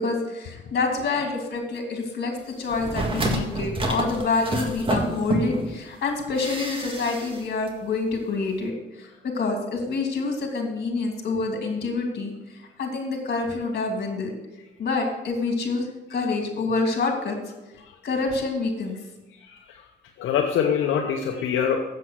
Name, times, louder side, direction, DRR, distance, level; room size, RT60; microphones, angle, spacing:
voice 1, 0.0-14.3 14.8-17.4 18.0-19.0, left 3 dB, 55° left, 2 dB, 2.6 m, -27 dB
sound 1, 2.7-5.7 6.4-7.4 7.7-7.8, right 2 dB, 25° right, 1.8 m, -28 dB
voice 2, 19.3-19.9 20.2-21.8, left 7 dB, 80° left, 3 dB, 0.9 m, -25 dB
7.7 x 7.5 x 6.2 m, 1.0 s
cardioid pair, 90°, 20 cm